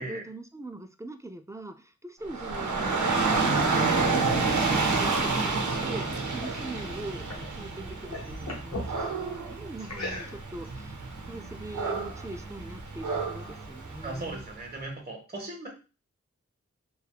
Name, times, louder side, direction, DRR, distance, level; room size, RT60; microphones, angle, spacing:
voice 1, 0.0-14.4, right 2 dB, 10° right, 7 dB, 0.3 m, -42 dB
Dog / Rain, 2.3-14.4, right 4 dB, 75° right, 0.6 m, -29 dB
sound 1, 4.5-7.5 7.9-8.9 9.8-10.7, left 2 dB, 65° left, 0.9 m, -41 dB
voice 2, 14.0-15.7, right 2 dB, 30° right, 0 dB, 1.0 m, -37 dB
3.3 x 2.3 x 2.3 m, 0.32 s
wide cardioid pair, 50°, 30 cm